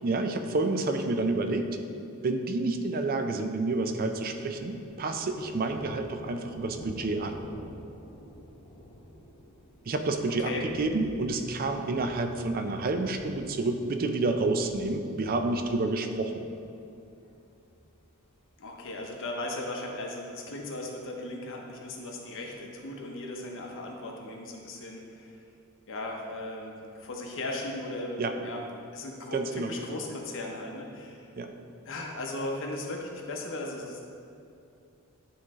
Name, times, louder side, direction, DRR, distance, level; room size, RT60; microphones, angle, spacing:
voice 1, 0.0-1.7 2.2-7.4 9.9-16.4 28.2-28.3 29.3-29.7 31.4-31.5, right 2 dB, 40° right, 6 dB, 0.4 m, -29 dB
Thunder, 3.7-19.3, equal, 25° left, 0.7 m, -50 dB
voice 2, 18.6-25.4 25.9-28.6 28.9-31.3 31.8-34.0, left 2 dB, 60° left, 0 dB, 0.8 m, -37 dB
9.4 x 3.2 x 3.6 m, 2.7 s
head